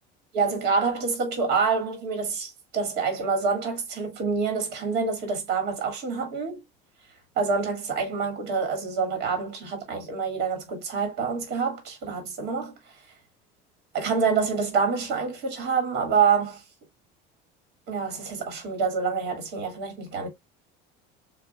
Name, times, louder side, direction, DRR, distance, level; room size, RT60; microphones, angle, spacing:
voice 1, 0.3-6.6 7.4-12.7 13.9-16.6 17.9-20.3, right 5 dB, 50° right, 2.4 m, -27 dB
7.0 x 2.6 x 2.3 m
cardioid pair, 170°, 21 cm